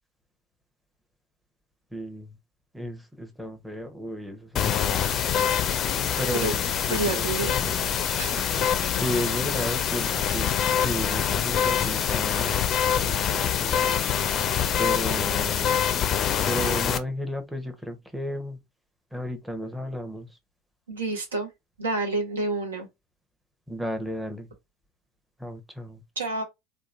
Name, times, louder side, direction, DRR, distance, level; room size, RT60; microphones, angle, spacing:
voice 1, 1.9-2.3 2.7-5.3 6.2-7.8 9.0-12.6 12.9-14.0 14.8-15.7 16.5-18.6 19.1-20.3 23.7-24.5 25.4-26.0, equal, 5° right, 0.7 m, -33 dB
sound 1, 4.6-17.0, left 8 dB, 40° left, 0.4 m, -25 dB
voice 2, 6.9-7.5 8.2-8.5 8.8-8.9 20.9-21.5 21.8-22.9 26.2-26.4, right 2 dB, 85° right, 0.8 m, -29 dB
2.9 x 2.2 x 2.4 m
hypercardioid pair, 75°, 0 cm